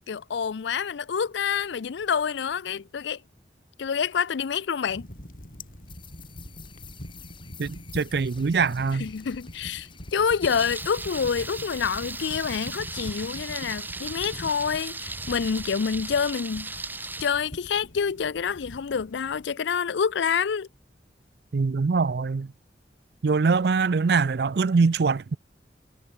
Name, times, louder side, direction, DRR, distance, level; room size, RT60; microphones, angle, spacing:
voice 1, 0.0-3.2 3.8-5.1 9.0-16.7 17.2-20.7, left 6 dB, 80° left, 0.5 m, -27 dB
sound 1, 4.9-19.5, equal, 50° left, 5.4 m, -44 dB
sound 2, 5.9-15.1, left 9 dB, 25° left, 3.3 m, -51 dB
voice 2, 7.6-9.1 21.5-22.5 23.2-25.4, right 4 dB, 60° right, 0.4 m, -23 dB
Thunder, 10.4-17.3, right 3 dB, 10° right, 4.9 m, -37 dB
head